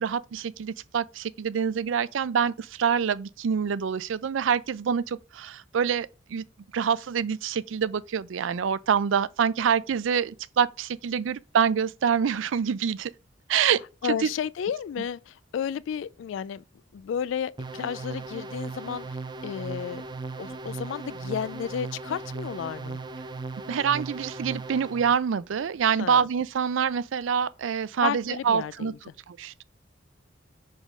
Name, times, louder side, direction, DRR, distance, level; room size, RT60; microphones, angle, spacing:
voice 1, 0.0-6.4 6.7-13.1 13.5-13.8 14.1-14.3 23.7-28.9 29.3-29.6, right 7 dB, 85° right, 0.4 m, -26 dB
voice 2, 14.0-16.6 16.9-19.2 19.4-20.0 20.4-23.0 26.0-26.3 28.0-29.0, left 8 dB, 80° left, 0.3 m, -32 dB
sound 1, 17.6-25.1, right 3 dB, 25° right, 0.4 m, -37 dB
5.0 x 3.7 x 5.3 m
head